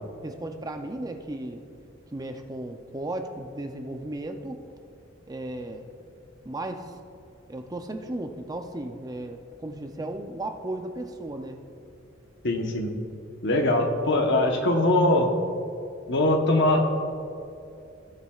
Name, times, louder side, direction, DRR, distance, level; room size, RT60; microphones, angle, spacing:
voice 1, 0.2-1.6 2.1-4.6 5.3-5.9 6.4-6.9 7.5-11.6, right 1 dB, 20° right, 5 dB, 0.5 m, -35 dB
voice 2, 12.4-12.9 13.4-15.3 16.1-16.8, left 1 dB, 60° left, 3 dB, 1.0 m, -22 dB
17.5 x 7.3 x 2.4 m, 2.6 s
head